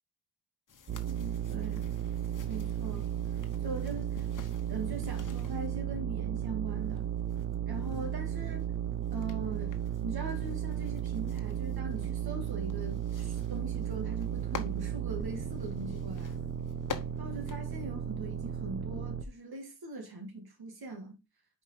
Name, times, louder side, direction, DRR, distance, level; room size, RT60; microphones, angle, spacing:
sound 1, 0.7-5.7 6.7-18.5, left 6 dB, 45° left, 1.2 m, -50 dB
sound 2, 0.9-19.2, right 10 dB, 30° right, 0.7 m, -35 dB
voice 1, 1.1-1.9 2.5-3.1 3.6-4.3 4.7-7.1 7.7-8.7 9.1-16.4 17.2-21.2, right 2 dB, 60° right, 2.3 m, -41 dB
5.1 x 4.9 x 5.7 m
cardioid pair, 90°, 42 cm